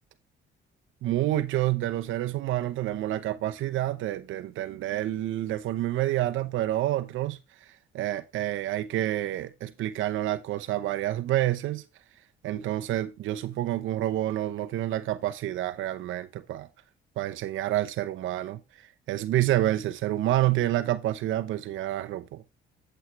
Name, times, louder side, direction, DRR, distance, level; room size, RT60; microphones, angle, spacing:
voice 1, 1.0-7.4 7.9-11.8 12.4-16.7 17.2-18.6 19.1-22.4, right 14 dB, 85° right, 0.8 m, -28 dB
8.3 x 8.0 x 3.2 m
cardioid pair, 90°, 20 cm